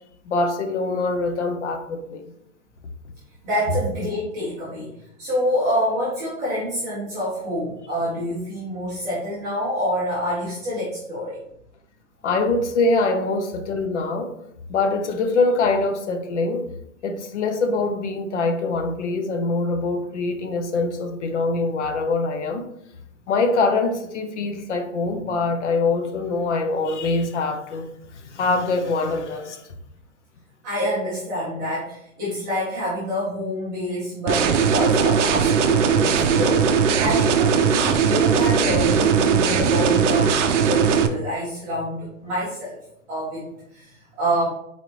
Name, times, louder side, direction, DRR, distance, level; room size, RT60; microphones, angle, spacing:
voice 1, 0.3-2.2 12.2-14.3 14.7-16.7 17.0-22.6 23.3-29.7, left 3 dB, 55° left, 6 dB, 0.6 m, -24 dB
voice 2, 3.4-4.9 5.2-11.4 30.6-40.3 40.7-42.8 43.1-44.5, equal, 5° right, -11 dB, 0.5 m, -27 dB
sound 1, 34.3-41.1, right 6 dB, 60° right, 0.6 m, -19 dB
4.0 x 3.1 x 2.9 m, 0.76 s
hypercardioid pair, 160°, 42 cm